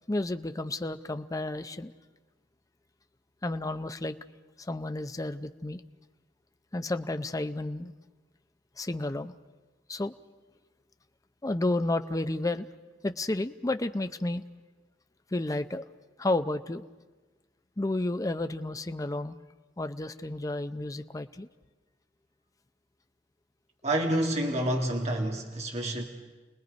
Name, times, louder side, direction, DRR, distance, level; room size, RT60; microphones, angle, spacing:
voice 1, 0.1-1.9 3.4-4.2 4.6-5.8 6.7-7.9 8.8-9.3 9.9-10.1 11.4-12.7 13.0-14.4 15.3-15.8 16.2-16.8 17.8-19.4 19.8-21.5, left 2 dB, 20° left, 9 dB, 0.6 m, -31 dB
voice 2, 23.8-26.0, right 1 dB, 40° right, 1 dB, 2.0 m, -28 dB
29.5 x 19.5 x 5.3 m, 1.2 s
head